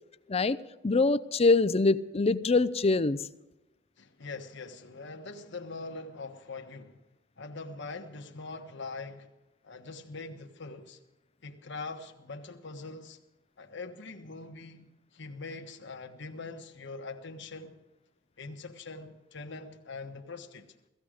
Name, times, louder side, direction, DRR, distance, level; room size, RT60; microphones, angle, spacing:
voice 1, 0.8-3.2, left 3 dB, 30° left, 0.5 m, -24 dB
voice 2, 4.0-7.0 7.4-9.3 9.6-11.0 11.4-13.2 13.6-17.8 18.4-20.7, left 3 dB, 65° left, 1.3 m, -43 dB
17.0 x 15.5 x 5.0 m
head